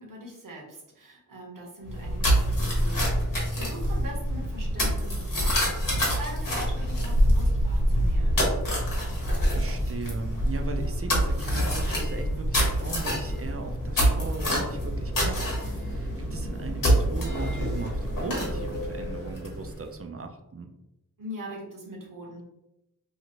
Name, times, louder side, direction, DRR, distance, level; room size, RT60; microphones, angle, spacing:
voice 1, 0.0-8.4 21.2-22.4, equal, 70° right, -3 dB, 1.0 m, -42 dB
sound 1, 1.9-19.8, equal, 70° left, 1.0 m, -26 dB
voice 2, 9.2-20.7, right 3 dB, 45° right, 5 dB, 0.4 m, -38 dB
2.8 x 2.4 x 2.9 m, 0.91 s
wide cardioid pair, 60°, 34 cm